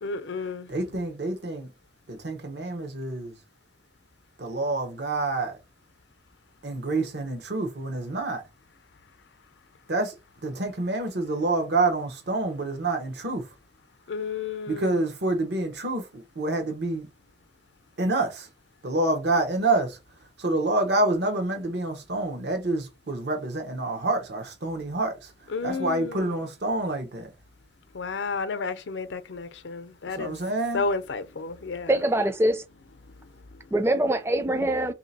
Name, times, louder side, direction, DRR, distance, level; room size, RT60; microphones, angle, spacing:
voice 1, 0.0-0.7 14.1-15.0 25.5-26.3 27.9-30.4 30.7-31.9 33.1-33.7, left 4 dB, 85° left, 0.6 m, -32 dB
voice 2, 0.7-1.7 2.1-3.3 4.4-5.6 6.6-8.4 9.9-10.1 10.4-13.4 14.7-17.1 18.0-18.5 18.8-20.0 20.4-25.3 25.6-27.3 30.1-30.8, right 2 dB, 65° right, 0.9 m, -27 dB
voice 3, 31.9-32.6 33.7-34.9, right 1 dB, 15° right, 0.4 m, -23 dB
3.3 x 2.7 x 4.1 m
head